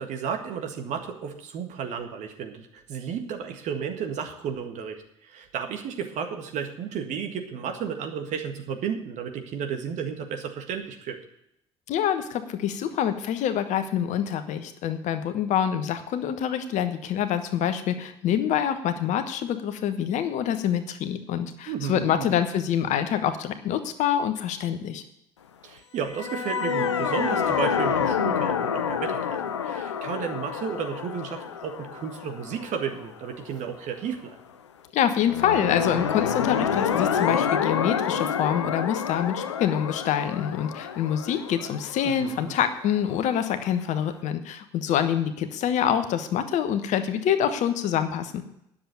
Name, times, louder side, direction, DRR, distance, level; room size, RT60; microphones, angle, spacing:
voice 1, 0.0-11.2 21.7-22.4 25.6-34.4 42.0-42.6, right 7 dB, 55° right, 5 dB, 1.7 m, -33 dB
voice 2, 11.9-25.0 34.9-48.4, left 9 dB, 55° left, 9 dB, 1.2 m, -26 dB
sound 1, 26.1-33.3 35.2-43.0, left 7 dB, 80° left, 0.6 m, -28 dB
10.0 x 7.4 x 9.3 m, 0.78 s
figure-of-eight pair, 50°, 15 cm